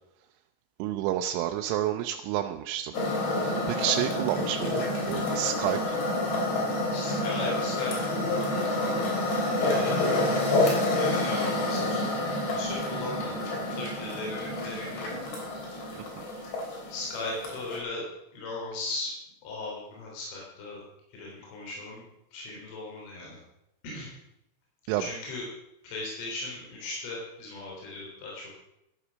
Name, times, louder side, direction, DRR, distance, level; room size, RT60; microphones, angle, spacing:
voice 1, 0.8-3.0 3.4-6.0 16.2-16.3 24.9-25.0, right 12 dB, 85° right, 5 dB, 3.2 m, -30 dB
sound 1, 2.9-17.8, left 2 dB, 60° left, 5.1 m, -28 dB
voice 2, 6.9-9.2 9.6-10.5 10.9-12.2 12.5-13.4 13.8-15.4 16.9-18.0 18.3-19.1 19.4-20.8 21.2-22.0 22.3-23.4 23.8-24.2 25.0-25.4 25.8-28.5, left 2 dB, 80° left, -3 dB, 6.0 m, -37 dB
13.0 x 9.9 x 6.2 m, 0.84 s
omnidirectional pair, 5.6 m